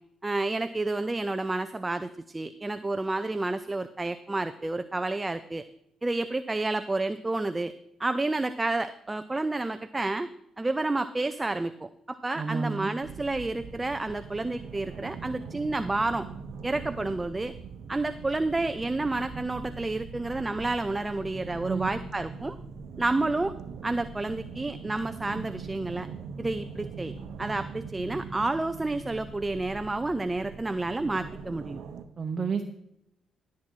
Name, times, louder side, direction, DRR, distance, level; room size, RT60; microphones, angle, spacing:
voice 1, 0.2-5.6 6.0-7.7 8.0-16.3 16.6-17.5 17.9-22.6 23.0-23.5 23.8-26.1 26.4-27.1 27.4-31.8, right 2 dB, 20° right, 11 dB, 0.6 m, -30 dB
voice 2, 12.4-12.9 21.7-21.9 32.2-32.7, right 5 dB, 45° right, 4 dB, 1.0 m, -30 dB
sound 1, 13.0-32.0, right 6 dB, 70° right, 0.9 m, -42 dB
14.0 x 7.5 x 4.6 m, 0.79 s
supercardioid pair, 50°, 0 cm